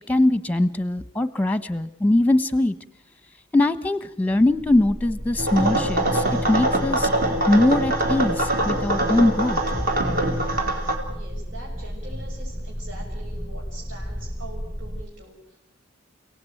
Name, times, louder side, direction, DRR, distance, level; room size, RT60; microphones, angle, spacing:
voice 1, 0.1-2.7 3.5-7.1 7.5-9.6, left 2 dB, 10° left, 14 dB, 1.0 m, -21 dB
sound 1, 4.2-15.0, equal, 25° right, 2.2 m, -34 dB
sound 2, 5.4-11.0, right 1 dB, 45° right, 3.9 m, -23 dB
voice 2, 11.1-15.3, right 1 dB, 75° right, -2 dB, 6.6 m, -43 dB
29.5 x 17.5 x 9.2 m, 0.81 s
head